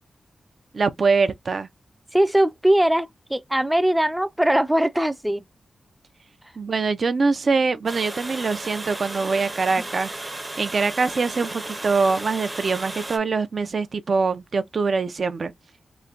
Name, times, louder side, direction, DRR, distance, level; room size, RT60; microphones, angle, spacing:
voice 1, 0.7-1.7 6.6-15.5, right 4 dB, 60° right, 0.6 m, -23 dB
voice 2, 2.1-5.4, right 1 dB, 10° right, 0.4 m, -20 dB
Water, 7.9-13.2, right 2 dB, 30° right, 0.8 m, -34 dB
3.2 x 2.2 x 3.9 m
cardioid pair, 75°, 0 cm